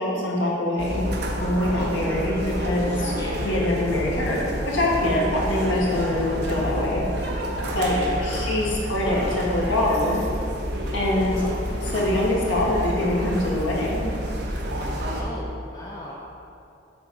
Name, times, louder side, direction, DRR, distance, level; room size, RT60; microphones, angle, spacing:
voice 1, 0.0-3.1 3.4-7.4 7.7-10.2 10.9-11.4 11.8-14.1, left 1 dB, 85° left, -4 dB, 1.6 m, -24 dB
sound 1, 0.8-15.2, equal, 60° right, 1.0 m, -29 dB
voice 2, 3.2-4.1 7.8-8.7 11.3-11.6 15.1-16.1, left 1 dB, 20° left, -4 dB, 0.6 m, -38 dB
7.7 x 4.0 x 6.3 m, 2.6 s
head